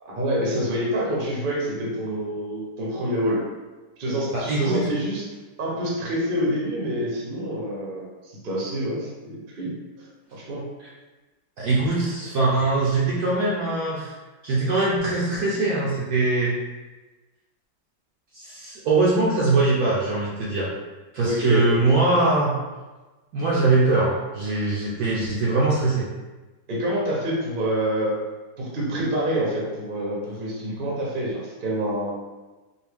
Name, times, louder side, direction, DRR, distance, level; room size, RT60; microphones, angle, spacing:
voice 1, 0.0-3.4 4.0-5.2 5.6-9.7 10.0-10.6 21.2-21.7 26.7-28.2 28.6-32.1, equal, 40° right, -4 dB, 0.7 m, -27 dB
voice 2, 4.3-4.8 11.6-14.1 14.4-16.6 18.3-20.7 21.1-22.5 23.3-26.1, right 3 dB, 65° right, -6 dB, 1.0 m, -22 dB
4.3 x 2.2 x 3.5 m, 1.2 s
omnidirectional pair, 2.1 m